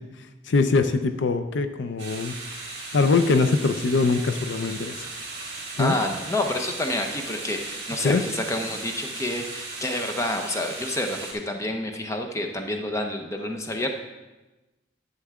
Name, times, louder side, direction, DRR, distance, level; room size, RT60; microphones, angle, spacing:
voice 1, 0.5-2.3 2.9-5.1 5.8-5.9 8.0-8.2, left 3 dB, 75° left, 9 dB, 0.5 m, -22 dB
sound 1, 2.0-11.3, right 3 dB, 35° right, 3.0 m, -37 dB
voice 2, 5.8-13.9, left 1 dB, 15° left, 4 dB, 0.7 m, -28 dB
11.5 x 7.1 x 3.6 m, 1.1 s
head